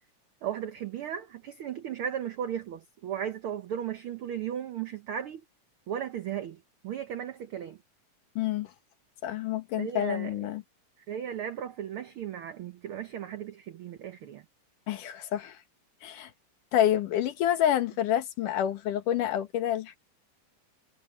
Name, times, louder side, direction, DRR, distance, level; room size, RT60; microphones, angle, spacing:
voice 1, 0.4-5.4 5.9-7.8 9.8-10.3 11.1-14.4, right 9 dB, 90° right, 1.2 m, -36 dB
voice 2, 8.4-8.7 9.2-10.6 14.9-15.6 16.0-16.3 16.7-20.0, left 11 dB, 85° left, 3.0 m, -28 dB
omnidirectional pair, 3.6 m